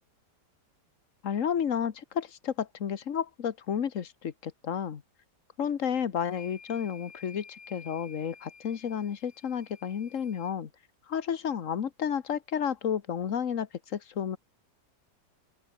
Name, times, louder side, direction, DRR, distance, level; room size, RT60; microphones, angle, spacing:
voice 1, 1.2-5.0 5.6-10.7 11.1-14.4, left 8 dB, 50° left, 1.5 m, -31 dB
sound 1, 6.2-10.5, left 5 dB, 90° left, 3.1 m, -52 dB
open air
omnidirectional pair, 1.9 m